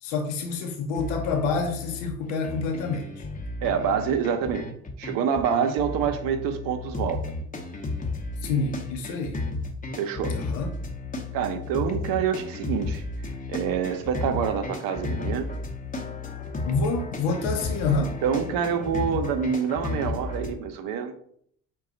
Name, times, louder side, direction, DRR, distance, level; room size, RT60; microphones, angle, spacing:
voice 1, 0.0-3.3 8.4-9.4 10.3-10.7 16.6-18.2, left 4 dB, 80° left, 4 dB, 0.7 m, -27 dB
sound 1, 0.9-20.5, left 3 dB, 20° left, 0.8 m, -33 dB
voice 2, 3.6-4.7 5.0-7.2 9.9-10.4 11.3-13.0 13.5-15.5 18.2-21.1, right 7 dB, 70° right, 7 dB, 0.7 m, -26 dB
4.7 x 2.3 x 3.7 m, 0.65 s
hypercardioid pair, 65°, 36 cm